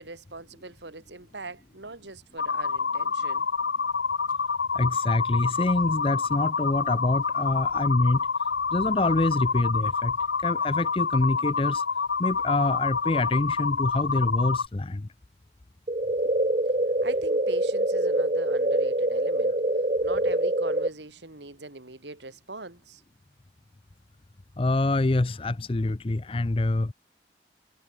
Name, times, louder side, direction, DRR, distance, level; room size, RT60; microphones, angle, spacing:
voice 1, 0.0-3.5 16.2-16.4 17.0-19.6 20.0-23.0, right 3 dB, 85° right, 2.8 m, -42 dB
sound 1, 2.4-14.7, left 5 dB, 80° left, 0.9 m, -27 dB
voice 2, 4.7-8.2 8.7-10.1 10.4-11.8 12.2-15.1 24.6-26.9, left 2 dB, 30° left, 0.6 m, -25 dB
sound 2, 15.9-20.9, right 1 dB, 35° right, 1.3 m, -25 dB
head